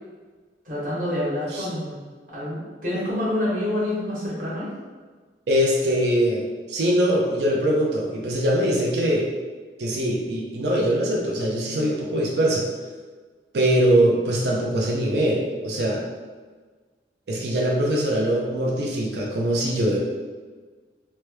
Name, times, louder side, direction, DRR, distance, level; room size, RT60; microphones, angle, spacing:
voice 1, 0.6-2.0 2.3-4.7, left 1 dB, 45° right, -8 dB, 1.2 m, -27 dB
voice 2, 5.5-9.3 9.8-12.7 13.5-16.0 17.3-20.0, right 1 dB, 65° right, -3 dB, 0.5 m, -22 dB
2.9 x 2.2 x 3.2 m, 1.4 s
head